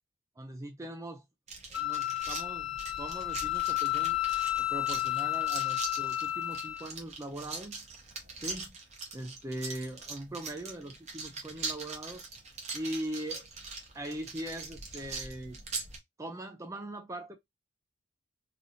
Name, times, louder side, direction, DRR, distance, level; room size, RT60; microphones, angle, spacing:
voice 1, 0.4-1.2 1.7-4.2 4.6-7.9 8.4-8.7 9.1-12.2 12.7-13.5 13.9-15.6 16.2-17.4, right 1 dB, 15° right, 0.4 m, -40 dB
sound 1, 1.5-16.0, right 4 dB, 35° right, 0.9 m, -42 dB
Wind instrument woodwind instrument, 1.7-6.9, left 15 dB, 80° left, 0.6 m, -32 dB
3.3 x 2.6 x 2.6 m
head